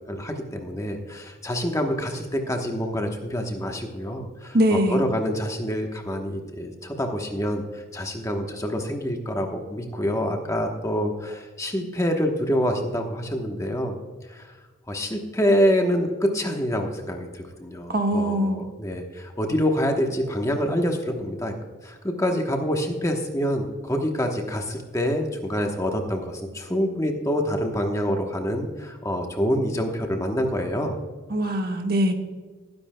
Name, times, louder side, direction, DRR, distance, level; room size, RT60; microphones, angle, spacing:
voice 1, 0.1-13.9 14.3-14.6 14.9-21.5 21.8-31.0, equal, 15° left, 3 dB, 1.0 m, -26 dB
voice 2, 4.5-5.0 17.9-18.6 31.3-32.1, equal, 50° right, 4 dB, 1.3 m, -22 dB
19.5 x 10.5 x 2.2 m, 1.4 s
head